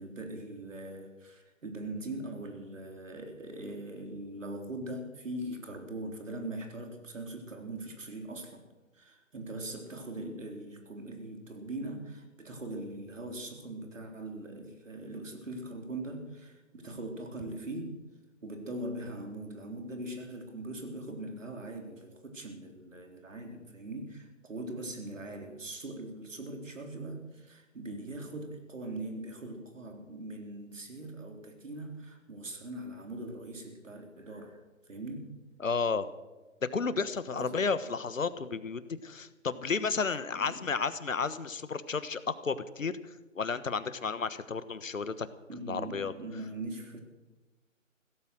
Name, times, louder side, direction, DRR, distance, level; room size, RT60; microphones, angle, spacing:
voice 1, 0.0-8.6 8.9-18.0 18.4-35.4 37.3-37.6 40.3-40.6 45.5-47.0, right 1 dB, 70° right, 4 dB, 3.9 m, -41 dB
voice 2, 35.6-36.1 36.7-42.9 43.3-45.3 45.7-46.1, left 5 dB, 75° left, 14 dB, 1.4 m, -32 dB
16.5 x 13.5 x 6.4 m, 1.2 s
figure-of-eight pair, 150°, 39 cm